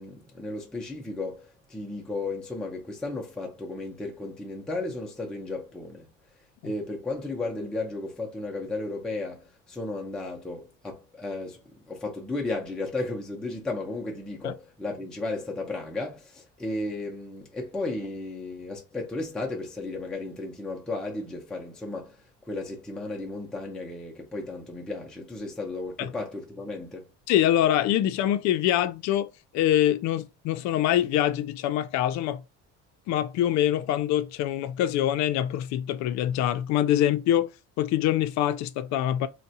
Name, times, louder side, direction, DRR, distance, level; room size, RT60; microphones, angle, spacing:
voice 1, 0.0-6.1 6.6-11.6 11.9-27.1, left 2 dB, 5° left, 0.5 m, -34 dB
voice 2, 27.3-29.3 29.5-32.4 33.1-37.5 37.8-39.3, left 12 dB, 70° left, 0.5 m, -24 dB
3.5 x 2.2 x 2.7 m
cardioid pair, 150°, 30 cm